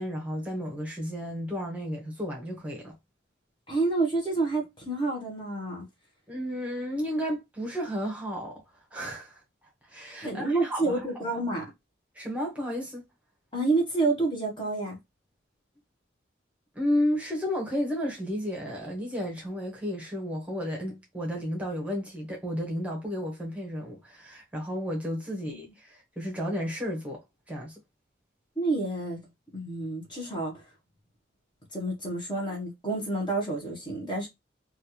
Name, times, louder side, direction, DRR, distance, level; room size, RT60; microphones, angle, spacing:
voice 1, 0.0-3.0 6.3-8.6 8.9-9.4 9.9-11.0 12.1-13.0 16.7-27.2 27.5-27.8, equal, 5° right, 1.0 m, -32 dB
voice 2, 3.7-5.9 10.2-11.7 13.5-15.0 25.3-25.6 28.6-29.2 29.5-30.6 31.7-34.3, right 2 dB, 25° left, 1.0 m, -29 dB
3.1 x 2.4 x 2.8 m
head